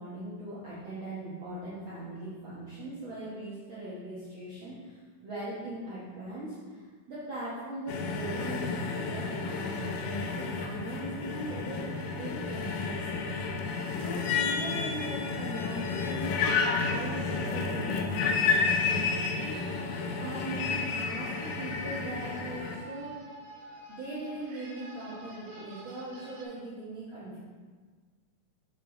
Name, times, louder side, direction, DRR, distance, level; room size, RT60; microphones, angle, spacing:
voice 1, 0.0-13.7 14.0-16.4 16.9-19.9 20.2-23.2 23.9-27.4, right 1 dB, 55° right, -9 dB, 1.5 m, -40 dB
sound 1, 7.9-22.8, left 4 dB, 90° left, 2.3 m, -31 dB
sound 2, 19.6-26.5, right 1 dB, 85° right, 2.9 m, -49 dB
6.9 x 5.4 x 3.8 m, 1.5 s
omnidirectional pair, 3.7 m